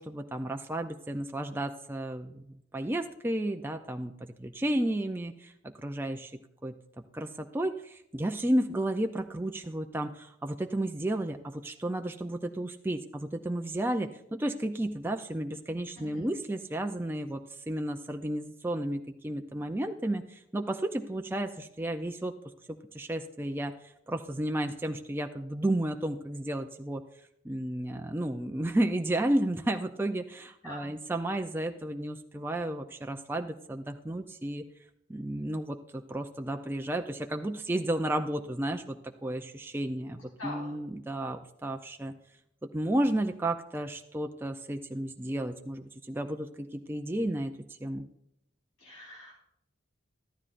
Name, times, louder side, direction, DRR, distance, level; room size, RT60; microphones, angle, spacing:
voice 1, 0.0-5.5 5.8-6.3 6.6-22.3 22.7-27.0 27.4-34.7 35.1-42.1 42.6-48.1, right 1 dB, 10° right, 4 dB, 0.4 m, -32 dB
voice 2, 16.0-16.3 30.6-30.9 40.2-40.7 48.8-49.3, left 2 dB, 90° left, -4 dB, 4.2 m, -44 dB
13.5 x 12.0 x 2.5 m, 0.79 s
head